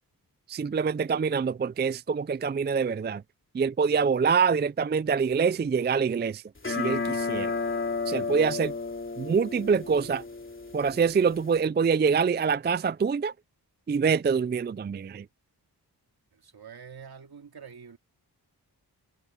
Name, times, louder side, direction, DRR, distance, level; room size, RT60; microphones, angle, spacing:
voice 1, 0.5-3.2 3.5-7.6 8.1-8.7 9.2-10.2 10.7-13.3 13.9-15.3, right 6 dB, 25° right, 0.4 m, -25 dB
sound 1, 6.6-11.6, left 4 dB, 30° left, 3.3 m, -32 dB
voice 2, 16.3-18.0, right 6 dB, 65° right, 2.6 m, -46 dB
cardioid pair, 65°, 40 cm